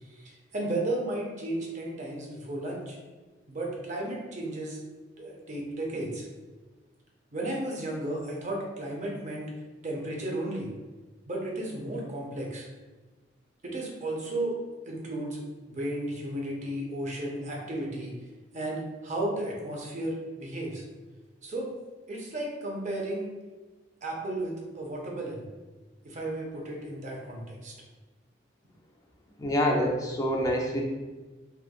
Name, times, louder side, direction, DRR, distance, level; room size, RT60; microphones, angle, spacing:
voice 1, 0.1-3.0 3.5-4.8 5.2-6.3 7.3-9.5 9.8-10.7 11.3-12.7 13.6-14.6 14.8-15.4 15.7-18.1 18.5-20.8 21.4-21.7 22.1-23.3 24.0-25.4 26.0-27.7, right 1 dB, 40° right, -2 dB, 0.6 m, -34 dB
voice 2, 29.4-30.8, equal, 20° left, 0 dB, 0.4 m, -26 dB
3.1 x 2.2 x 2.3 m, 1.3 s
head